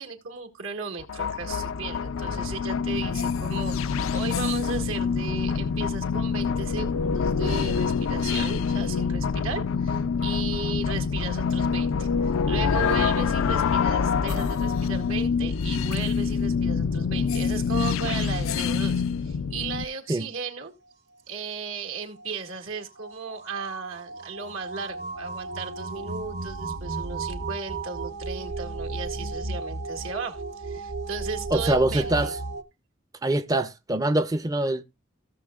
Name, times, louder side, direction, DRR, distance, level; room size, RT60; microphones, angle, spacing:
voice 1, 0.0-20.7 21.3-32.3, right 5 dB, 85° right, 2.0 m, -36 dB
sound 1, 1.0-19.9, left 5 dB, 85° left, 0.4 m, -26 dB
sound 2, 21.4-32.6, right 3 dB, 55° right, 0.8 m, -35 dB
voice 2, 31.5-32.4 33.2-34.8, right 1 dB, 20° right, 0.4 m, -24 dB
16.5 x 6.6 x 2.3 m
head